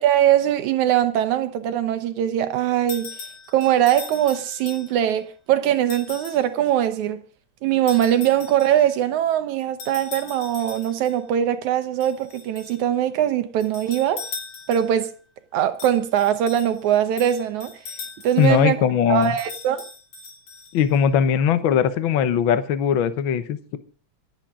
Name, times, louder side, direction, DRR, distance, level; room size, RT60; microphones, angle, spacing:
voice 1, 0.0-3.1 3.5-7.2 7.6-14.3 14.7-15.1 15.5-17.7 18.2-19.8, right 11 dB, 80° right, 2.3 m, -21 dB
sound 1, 2.9-5.1 5.9-6.5 7.9-8.9 9.8-11.2 12.0-12.8 13.6-15.0 15.8-18.6 19.2-21.0, left 5 dB, 85° left, 5.6 m, -39 dB
voice 2, 18.4-19.3 20.7-23.8, left 8 dB, 65° left, 1.2 m, -20 dB
26.0 x 9.0 x 3.7 m
omnidirectional pair, 3.3 m